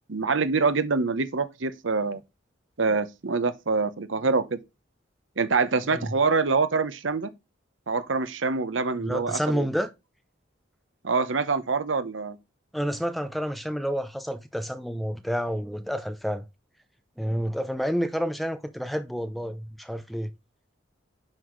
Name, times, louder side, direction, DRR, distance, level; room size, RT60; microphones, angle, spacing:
voice 1, 0.1-2.2 2.8-4.6 5.4-7.3 7.9-9.7 11.0-12.4, right 4 dB, 80° right, 0.8 m, -25 dB
voice 2, 5.8-6.1 9.0-9.9 12.7-16.4 17.2-20.3, equal, ahead, 0.6 m, -29 dB
10.5 x 4.1 x 3.1 m
head